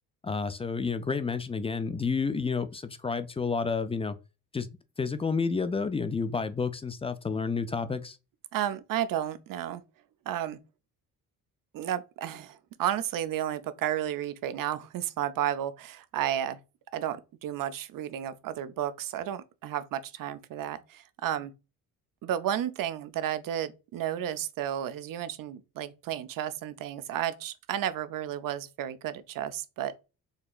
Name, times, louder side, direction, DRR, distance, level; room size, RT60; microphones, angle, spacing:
voice 1, 0.2-4.2 4.5-4.7 5.0-8.2, left 5 dB, 15° left, 0.3 m, -30 dB
voice 2, 8.5-9.8 10.3-10.6 11.7-16.6 16.9-21.5 22.2-30.0, right 11 dB, 60° right, 0.6 m, -32 dB
4.4 x 2.8 x 2.3 m
cardioid pair, 90°, 37 cm